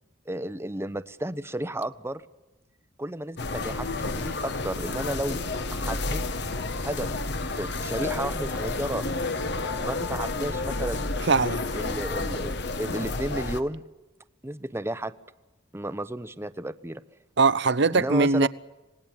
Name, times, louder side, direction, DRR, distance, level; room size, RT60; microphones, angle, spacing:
voice 1, 0.3-2.2 3.0-3.9 4.1-5.4 5.7-6.2 6.8-7.1 7.5-9.0 9.8-11.1 11.7-13.8 14.4-15.1 15.7-17.0 17.9-18.5, right 1 dB, 15° right, 0.8 m, -32 dB
sound 1, 3.4-13.6, left 3 dB, 60° left, 1.3 m, -30 dB
voice 2, 11.3-11.6 17.4-18.5, right 4 dB, 60° right, 0.8 m, -21 dB
26.5 x 19.5 x 9.0 m
head